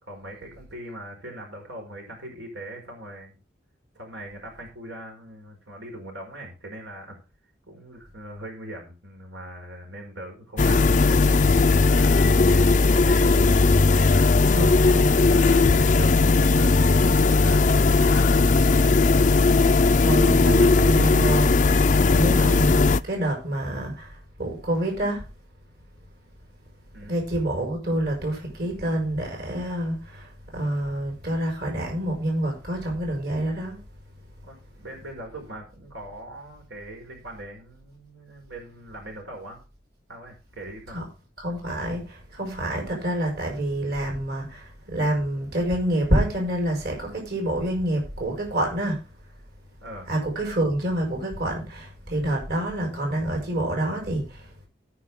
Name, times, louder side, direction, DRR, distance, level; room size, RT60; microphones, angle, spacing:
voice 1, 0.0-3.4 3.9-7.2 7.7-11.3 11.8-13.4 13.8-14.3 15.0-18.5 26.9-27.1 34.4-39.6 40.1-41.1 49.8-50.1, right 1 dB, 85° right, 5.0 m, -40 dB
sound 1, 10.6-23.0, left 3 dB, 40° left, 0.5 m, -18 dB
voice 2, 14.5-15.1 19.5-25.3 27.0-33.8 40.9-41.0 41.4-49.0 50.1-54.5, right 1 dB, 55° right, 4.9 m, -27 dB
18.0 x 6.1 x 3.6 m
head